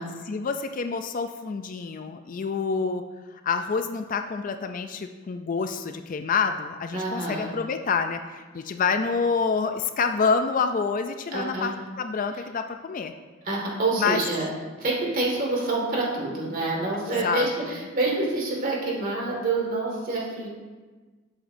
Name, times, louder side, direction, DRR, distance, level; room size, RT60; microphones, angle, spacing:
voice 1, 0.3-3.0 3.4-13.1 14.0-14.2 17.2-17.8, left 5 dB, 40° left, 7 dB, 0.4 m, -27 dB
voice 2, 6.9-7.5 11.3-11.7 13.4-14.5 14.8-20.5, right 2 dB, 40° right, -2 dB, 2.0 m, -27 dB
11.0 x 7.8 x 2.6 m, 1.3 s
head